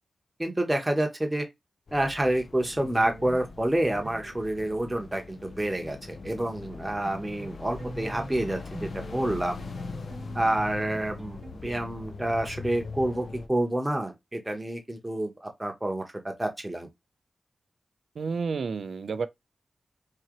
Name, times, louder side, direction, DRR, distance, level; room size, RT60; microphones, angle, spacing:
voice 1, 0.4-1.5 1.9-9.6 10.3-16.9, right 1 dB, 15° right, 0.9 m, -28 dB
sound 1, 1.9-13.5, left 4 dB, 65° left, 0.5 m, -41 dB
sound 2, 2.8-6.0 6.3-11.5, right 2 dB, 55° right, 1.2 m, -45 dB
voice 2, 18.2-19.3, right 5 dB, 80° right, 0.4 m, -30 dB
3.7 x 2.8 x 2.9 m
wide cardioid pair, 75°, 0 cm